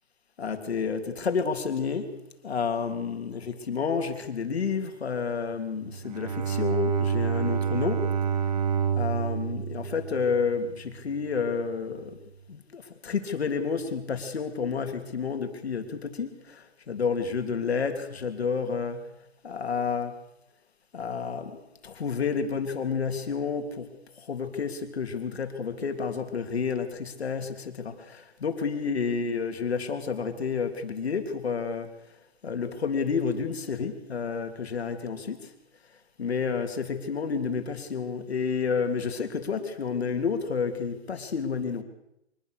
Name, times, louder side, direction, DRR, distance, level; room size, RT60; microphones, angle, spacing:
voice 1, 0.4-8.1 8.9-12.2 12.5-19.1 19.4-20.2 20.9-23.9 24.2-31.9 32.4-35.5 36.2-41.8, left 5 dB, 65° left, 6 dB, 3.4 m, -30 dB
Bowed string instrument, 5.8-11.0, right 7 dB, 35° right, 1.1 m, -28 dB
25.0 x 20.5 x 6.6 m, 0.85 s
hypercardioid pair, 160°, 34 cm